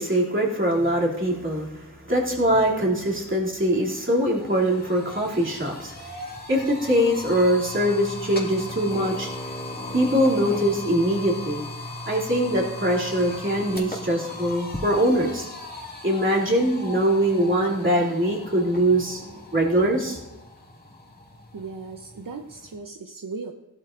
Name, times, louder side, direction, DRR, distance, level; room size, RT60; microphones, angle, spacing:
voice 1, 0.0-5.9 6.5-9.3 9.9-11.6 12.1-15.5 16.0-20.2, right 1 dB, 35° right, -4 dB, 2.7 m, -22 dB
sound 1, 3.7-22.8, left 2 dB, 30° left, 1.9 m, -38 dB
voice 2, 21.5-23.5, right 4 dB, 75° right, 4 dB, 0.8 m, -37 dB
16.5 x 12.5 x 2.5 m, 0.99 s
wide cardioid pair, 65°, 33 cm